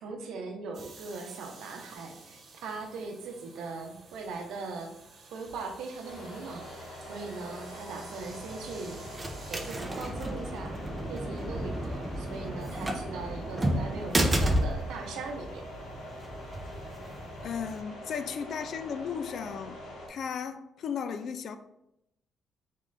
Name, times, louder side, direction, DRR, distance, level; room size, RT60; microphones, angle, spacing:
voice 1, 0.0-4.9 5.3-9.0 9.5-10.8 11.1-15.7, right 4 dB, 85° right, 0.7 m, -40 dB
sound 1, 0.7-9.8, right 3 dB, 55° right, 1.0 m, -52 dB
sound 2, 6.0-20.1, left 1 dB, 90° left, 1.4 m, -44 dB
sound 3, 8.2-17.8, right 1 dB, 20° right, 0.7 m, -33 dB
voice 2, 17.4-19.8 20.1-21.6, left 7 dB, 65° left, 0.4 m, -35 dB
3.6 x 3.2 x 3.8 m
cardioid pair, 90°, 0 cm